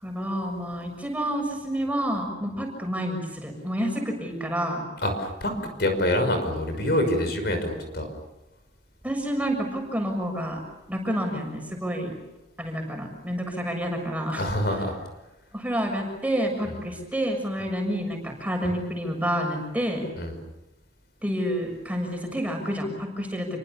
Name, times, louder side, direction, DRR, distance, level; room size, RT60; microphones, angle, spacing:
voice 1, 0.0-4.9 9.0-10.6 10.9-12.1 12.6-14.4 15.5-20.0 21.2-23.5, equal, 10° right, 2 dB, 6.7 m, -29 dB
voice 2, 5.0-5.5 5.8-8.1 14.4-14.9 20.2-20.3, left 1 dB, 60° left, 6 dB, 5.8 m, -25 dB
29.0 x 24.5 x 7.0 m, 1.0 s
head